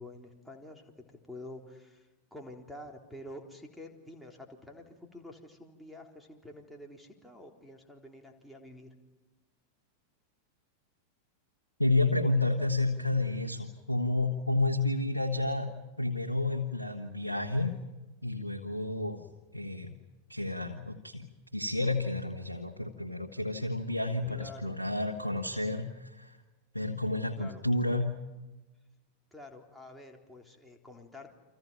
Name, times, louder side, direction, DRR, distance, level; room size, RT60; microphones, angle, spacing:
voice 1, 0.0-8.9 24.3-24.8 27.4-27.6 29.3-31.3, left 1 dB, ahead, 0 dB, 3.9 m, -48 dB
voice 2, 11.8-17.8 18.2-19.2 19.5-20.0 20.3-26.4 26.7-28.2, left 2 dB, 85° left, 3 dB, 1.6 m, -30 dB
30.0 x 26.0 x 5.8 m, 1.1 s
figure-of-eight pair, 90°, 0 cm